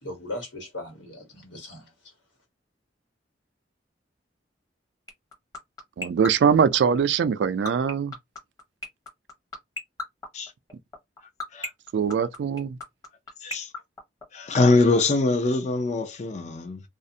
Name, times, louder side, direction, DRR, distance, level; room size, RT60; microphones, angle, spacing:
voice 1, 0.0-2.1, left 1 dB, 85° left, 1.4 m, -38 dB
sound 1, 5.1-14.7, left 2 dB, 20° left, 0.9 m, -32 dB
voice 2, 6.0-8.2 11.9-12.8, right 7 dB, 65° right, 0.3 m, -22 dB
voice 3, 13.4-13.7 14.3-16.8, left 3 dB, 40° left, 0.5 m, -23 dB
2.4 x 2.0 x 2.6 m
head